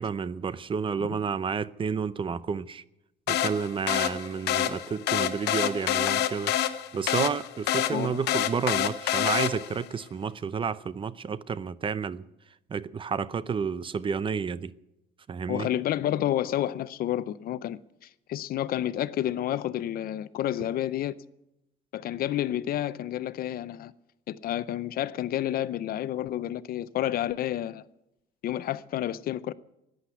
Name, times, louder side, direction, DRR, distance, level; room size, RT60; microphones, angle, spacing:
voice 1, 0.0-2.8 3.3-6.5 6.9-12.2 12.7-14.7 15.3-15.7, right 6 dB, 30° right, 0.6 m, -30 dB
sound 1, 3.3-9.9, left 11 dB, 75° left, 1.1 m, -27 dB
voice 2, 7.9-8.2 15.5-21.1 21.9-23.9 24.3-27.8 28.4-29.5, left 12 dB, 60° left, 0.7 m, -30 dB
14.0 x 10.0 x 9.3 m
cardioid pair, 110°, 17 cm